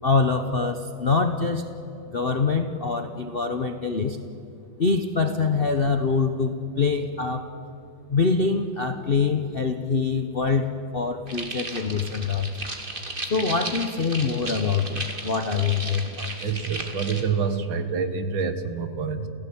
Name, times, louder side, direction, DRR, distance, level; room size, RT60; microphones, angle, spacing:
voice 1, 0.0-1.7 2.1-4.2 4.8-7.5 8.1-12.5 13.2-16.3, left 4 dB, 45° left, 7 dB, 0.7 m, -24 dB
sound 1, 11.3-17.2, right 2 dB, 25° right, 2.4 m, -35 dB
voice 2, 16.4-19.3, right 5 dB, 65° right, 10 dB, 2.2 m, -27 dB
29.0 x 16.0 x 8.6 m, 2.7 s
omnidirectional pair, 2.3 m